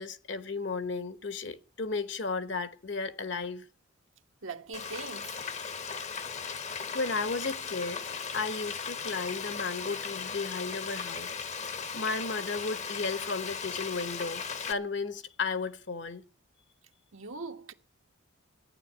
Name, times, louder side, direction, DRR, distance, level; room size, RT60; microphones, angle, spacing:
voice 1, 0.0-3.7 6.6-8.0 8.3-11.3 11.9-16.2, left 4 dB, 55° left, 1.1 m, -34 dB
voice 2, 4.4-5.4 17.1-17.7, right 4 dB, 75° right, 1.3 m, -41 dB
Frying (food), 4.7-14.7, left 6 dB, 35° left, 0.8 m, -37 dB
14.0 x 9.8 x 10.0 m
head